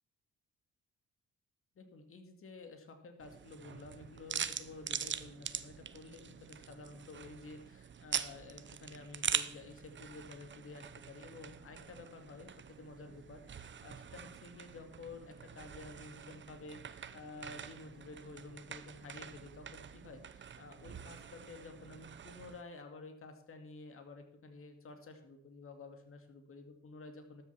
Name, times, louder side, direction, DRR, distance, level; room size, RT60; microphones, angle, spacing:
voice 1, 1.8-27.4, left 3 dB, 45° left, 5 dB, 2.5 m, -51 dB
sound 1, 3.2-22.6, right 8 dB, 40° right, 0.8 m, -44 dB
13.0 x 6.7 x 5.9 m, 0.76 s
cardioid pair, 90°, 30 cm